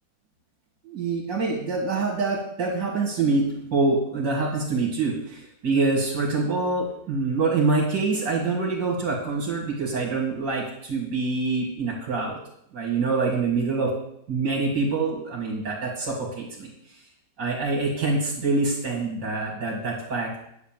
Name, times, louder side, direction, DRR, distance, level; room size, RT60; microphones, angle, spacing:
voice 1, 0.8-12.4 12.7-13.9 14.3-16.7 17.4-20.3, right 3 dB, 70° right, -4 dB, 2.6 m, -25 dB
9.4 x 4.3 x 7.3 m, 0.73 s
omnidirectional pair, 2.0 m